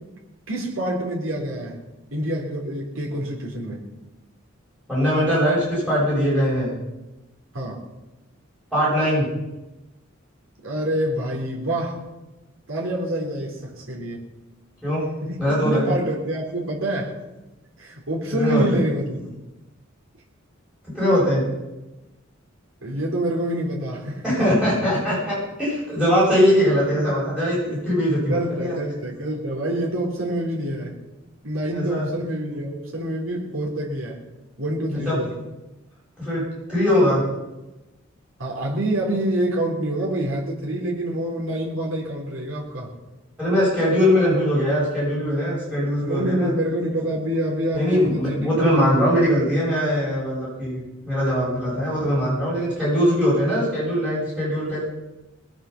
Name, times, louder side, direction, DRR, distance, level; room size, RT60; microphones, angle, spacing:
voice 1, 0.5-1.8 2.1-3.8 7.5-7.8 10.6-12.0 12.7-14.3 15.2-17.2 17.8-19.3 22.8-24.7 27.0-27.1 28.2-30.9 31.4-34.2 34.6-35.3 38.4-42.9 46.0-48.9, right 1 dB, 80° right, -2 dB, 3.7 m, -27 dB
voice 2, 4.9-6.7 8.7-9.3 14.8-15.0 15.4-15.9 18.3-18.6 20.9-21.4 24.2-28.7 31.7-32.1 35.0-35.1 36.2-36.4 36.7-37.2 43.4-46.5 47.7-54.8, equal, 5° right, -8 dB, 7.6 m, -21 dB
21.0 x 8.0 x 7.2 m, 1.0 s
head